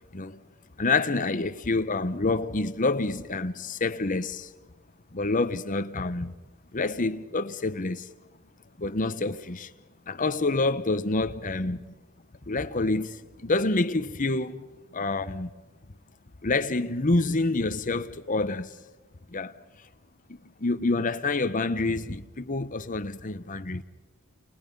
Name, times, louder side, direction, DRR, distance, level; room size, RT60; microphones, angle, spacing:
voice 1, 0.8-4.5 5.1-6.4 6.7-8.1 8.8-9.7 10.1-11.9 12.5-15.5 16.4-18.8 19.3-19.5 20.3-23.8, left 3 dB, 35° left, 1.0 m, -27 dB
29.5 x 29.0 x 5.4 m
head